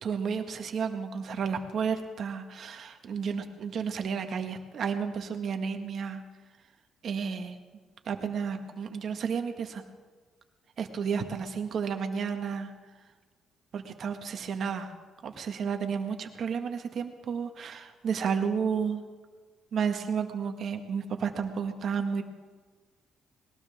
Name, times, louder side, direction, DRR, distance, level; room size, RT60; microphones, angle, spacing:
voice 1, 0.0-6.2 7.0-7.6 8.1-9.8 10.8-12.7 13.7-14.9 15.2-19.0 19.7-22.2, right 6 dB, 60° right, 6 dB, 1.7 m, -32 dB
20.5 x 19.0 x 3.6 m, 1.4 s
cardioid pair, 90°, 0 cm